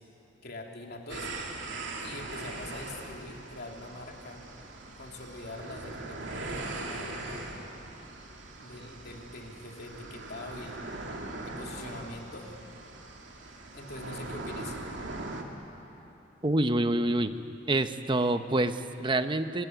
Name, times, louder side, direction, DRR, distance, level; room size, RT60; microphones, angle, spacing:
voice 1, 0.4-1.3 2.0-4.4 5.0-7.5 8.6-11.1 11.4-12.7 13.7-14.8, left 2 dB, 55° left, 1 dB, 2.9 m, -43 dB
sound 1, 1.1-15.4, right 2 dB, 65° right, 2.6 m, -41 dB
voice 2, 16.4-17.3 17.7-19.7, right 1 dB, 25° right, 9 dB, 0.9 m, -27 dB
26.5 x 20.5 x 9.6 m, 2.9 s
head